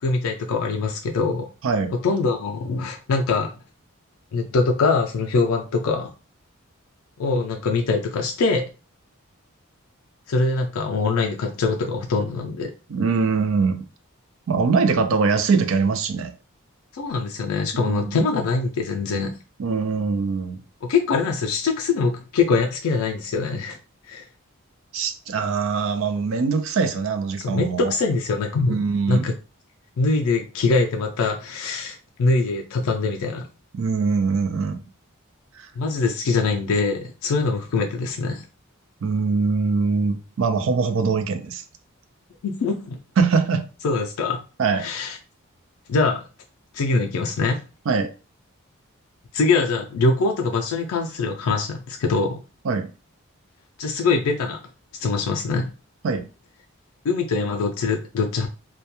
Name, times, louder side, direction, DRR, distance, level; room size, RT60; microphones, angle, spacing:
voice 1, 0.0-1.5 2.0-3.5 4.3-6.1 7.2-8.7 10.3-12.7 16.9-19.3 20.8-23.8 24.1-24.2 27.4-28.8 29.1-29.3 30.0-33.5 35.8-38.4 42.4-43.0 43.8-44.4 44.7-45.2 45.9-46.2 46.7-47.6 49.3-52.4 53.8-54.6 55.0-55.7 57.0-58.5, left 4 dB, 85° left, 0.4 m, -23 dB
voice 2, 12.9-13.8 14.5-16.3 17.7-18.2 19.6-20.6 24.9-27.9 28.7-29.3 33.7-34.8 35.6-35.7 39.0-41.6 43.2-43.6 44.6-44.9 47.9-48.1 52.6-52.9 56.0-56.2, right 4 dB, 65° right, 0.4 m, -22 dB
2.2 x 2.1 x 2.8 m
head